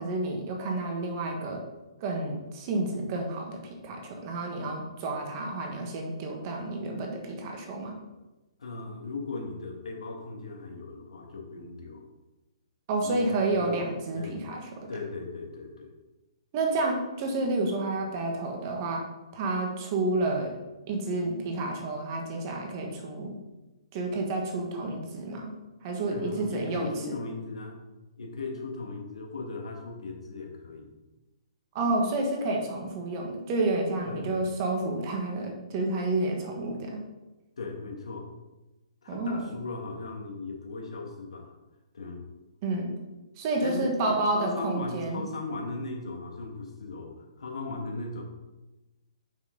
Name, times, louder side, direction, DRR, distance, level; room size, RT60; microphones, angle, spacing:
voice 1, 0.0-1.6 2.0-8.0 12.9-14.9 16.5-19.1 19.3-20.6 20.9-23.3 23.9-25.5 25.8-26.9 31.7-37.0 39.1-39.5 42.6-42.9 43.4-45.2, right 2 dB, 35° right, 1 dB, 1.5 m, -30 dB
voice 2, 8.6-12.0 13.0-13.7 14.1-14.4 14.9-15.9 26.1-27.8 28.2-31.0 34.0-34.4 37.6-38.3 39.0-41.5 41.9-42.2 43.6-48.2, left 3 dB, 80° left, 1 dB, 2.0 m, -37 dB
7.0 x 5.9 x 4.0 m, 1.1 s
hypercardioid pair, 150°, 3 cm